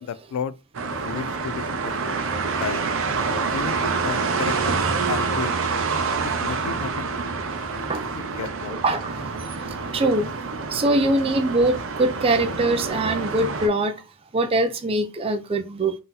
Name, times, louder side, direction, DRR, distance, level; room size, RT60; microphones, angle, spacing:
voice 1, 0.0-0.5 1.0-2.2 2.5-2.8 3.5-5.5 6.2-7.1 8.4-8.8, left 7 dB, 80° left, 0.3 m, -32 dB
sound 1, 0.7-13.7, right 4 dB, 65° right, 0.7 m, -27 dB
voice 2, 8.8-10.3 10.7-14.0 14.3-15.9, right 2 dB, 25° right, 0.4 m, -23 dB
4.0 x 2.7 x 3.9 m
head